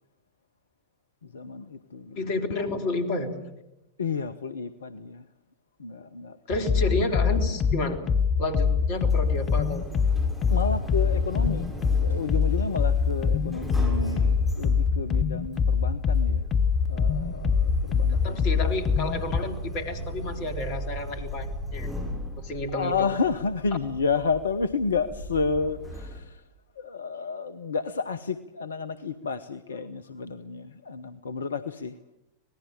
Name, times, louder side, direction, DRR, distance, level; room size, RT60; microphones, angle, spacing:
voice 1, 1.2-2.3 4.0-5.3 5.8-7.1 10.5-11.7 12.0-16.5 16.9-18.6 22.7-26.4 26.8-32.0, left 5 dB, 70° left, 14 dB, 0.9 m, -31 dB
voice 2, 2.2-3.3 6.5-8.0 8.4-9.8 18.1-21.9 22.4-23.1, left 2 dB, 45° left, 7 dB, 3.7 m, -30 dB
sound 1, 6.5-19.4, left 6 dB, 25° left, 1.0 m, -24 dB
Sliding door, 8.8-26.2, equal, ahead, 6.7 m, -37 dB
26.0 x 19.0 x 7.5 m, 0.92 s
figure-of-eight pair, 90°, 0 cm